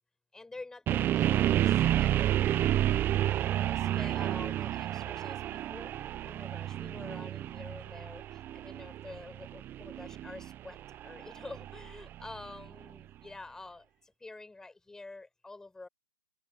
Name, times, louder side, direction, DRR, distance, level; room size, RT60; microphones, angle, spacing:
voice 1, 0.3-2.1 3.2-5.9 6.2-15.9, left 3 dB, 5° left, 5.6 m, -48 dB
sound 1, 0.9-12.8, right 12 dB, 20° right, 0.8 m, -30 dB
open air
hypercardioid pair, 135°, 10 cm